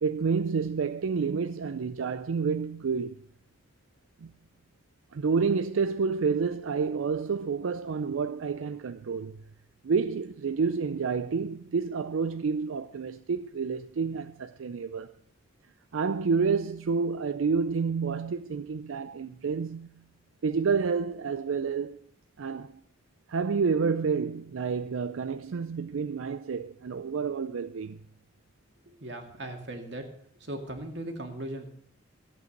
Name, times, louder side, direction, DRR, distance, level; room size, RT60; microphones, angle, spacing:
voice 1, 0.0-3.1 4.2-4.3 5.1-9.4 9.8-15.1 15.9-20.0 20.4-22.0 22.4-22.7 23.3-28.0, right 5 dB, 85° right, 0.5 m, -29 dB
voice 2, 28.9-30.1 30.4-31.7, right 1 dB, 60° right, 2.3 m, -38 dB
14.5 x 8.2 x 6.5 m
head